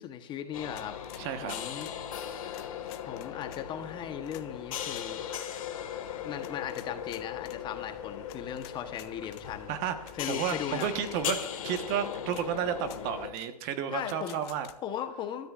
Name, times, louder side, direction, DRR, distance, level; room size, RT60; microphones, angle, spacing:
voice 1, 0.0-1.0 1.4-1.9 3.1-5.2 6.2-9.8 10.2-10.9 13.9-14.4 14.8-15.5, left 9 dB, 25° left, 8 dB, 1.1 m, -37 dB
sound 1, 0.5-13.3, left 9 dB, 60° left, 2.1 m, -38 dB
sound 2, 0.7-2.0 2.5-3.6 4.3-4.4 4.9-5.1 5.4-5.6 6.4-7.6 8.3-9.4 10.1-10.2 10.4-11.2 11.7-11.8 12.3-12.5 12.8-13.0 13.4-13.5 14.1-14.8, left 17 dB, 40° left, 0.8 m, -51 dB
voice 2, 1.2-1.6 9.7-14.7, right 8 dB, 35° right, 9 dB, 1.3 m, -32 dB
24.0 x 13.0 x 2.5 m, 0.79 s
hypercardioid pair, 130°, 20 cm